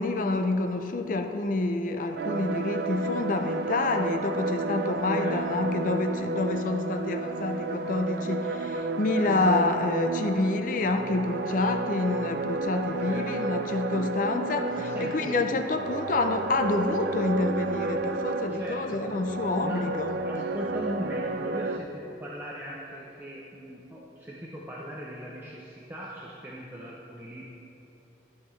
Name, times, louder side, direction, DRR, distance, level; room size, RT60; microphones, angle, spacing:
voice 1, 0.0-20.4, left 2 dB, 45° left, 6 dB, 0.5 m, -28 dB
sound 1, 2.2-21.8, right 3 dB, 60° right, 0.3 m, -31 dB
voice 2, 5.1-5.6 13.0-13.6 14.6-15.4 18.5-19.1 19.6-19.9 20.2-27.5, equal, 10° right, -5 dB, 0.6 m, -39 dB
13.0 x 5.8 x 3.2 m, 2.9 s
head